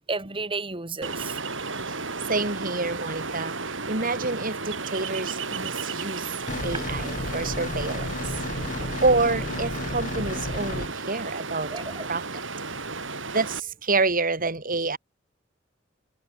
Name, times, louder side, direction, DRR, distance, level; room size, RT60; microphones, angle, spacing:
voice 1, 0.1-1.9 2.2-2.3 8.8-8.9 11.7-12.1, right 3 dB, 25° right, 2.5 m, -34 dB
Ocean, 1.0-13.6, right 4 dB, 80° right, 7.2 m, -34 dB
voice 2, 2.2-6.3 6.6-8.3 8.7-11.7 12.1-12.4 13.3-15.0, right 3 dB, 45° right, 3.5 m, -28 dB
sound 1, 6.5-10.9, left 1 dB, 45° left, 2.6 m, -32 dB
head